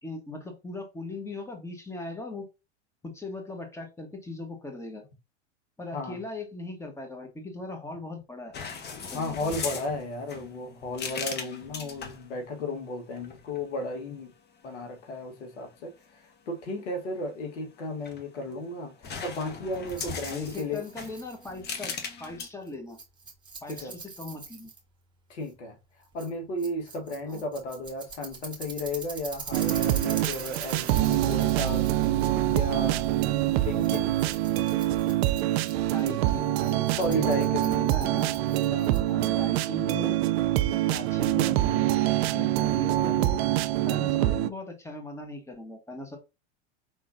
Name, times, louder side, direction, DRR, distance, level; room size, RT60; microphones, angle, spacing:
voice 1, 0.0-2.5 3.0-5.0 5.8-8.5 9.1-9.5 20.3-23.0 23.6-24.7 27.2-27.4 33.4-33.5 35.9-37.4 37.6-38.3 39.1-40.2 40.7-41.6 42.2-43.4 43.9-46.2, left 2 dB, 10° left, 1.4 m, -39 dB
sound 1, 8.5-12.3 13.2-13.6 17.8-18.6 19.0-22.5, left 5 dB, 30° left, 1.1 m, -38 dB
voice 2, 9.1-14.3 14.6-15.9 16.5-20.8 23.7-23.9 25.3-25.8 26.1-31.9 32.4-33.1 33.5-34.2 37.0-37.7 38.7-38.9, left 1 dB, 80° left, 1.5 m, -34 dB
Rattle, 19.7-39.3, right 4 dB, 15° right, 1.5 m, -44 dB
sound 2, 29.5-44.5, right 14 dB, 60° right, 0.5 m, -25 dB
4.9 x 3.7 x 2.6 m
hypercardioid pair, 95°, 35 cm